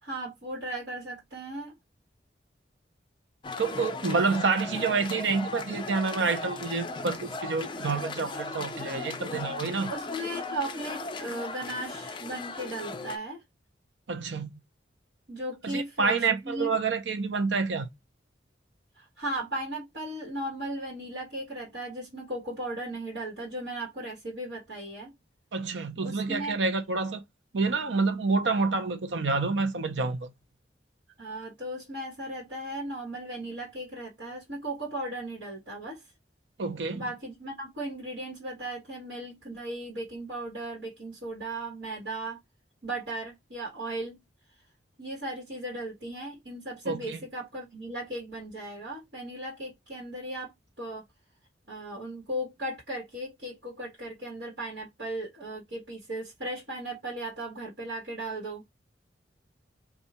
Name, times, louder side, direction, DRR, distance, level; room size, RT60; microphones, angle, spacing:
voice 1, 0.0-1.8 9.9-13.4 15.3-16.7 19.0-25.1 26.0-26.5 31.2-36.0 36.9-42.4 42.8-44.2 45.0-50.5 50.8-51.0 51.7-58.6, right 1 dB, 70° right, 1.6 m, -36 dB
sound 1, 3.4-13.2, left 3 dB, 30° left, 0.4 m, -37 dB
voice 2, 3.6-9.9 14.1-14.5 15.6-17.9 25.5-27.2 27.5-30.3 36.6-37.0 46.8-47.2, right 4 dB, 85° right, 0.7 m, -28 dB
2.7 x 2.4 x 4.1 m
head